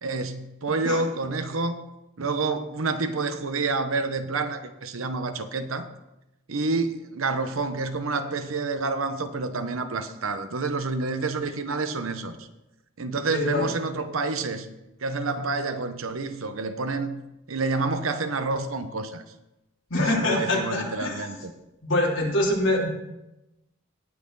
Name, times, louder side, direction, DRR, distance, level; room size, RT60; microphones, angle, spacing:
voice 1, 0.0-1.8 2.2-5.9 6.5-12.5 13.0-14.7 15.0-17.2 17.5-19.2 20.0-21.5, right 3 dB, 90° right, 9 dB, 0.9 m, -28 dB
voice 2, 13.3-13.7 19.9-21.4 21.8-22.9, left 1 dB, 65° left, -3 dB, 3.2 m, -25 dB
18.0 x 6.2 x 4.0 m, 0.93 s
head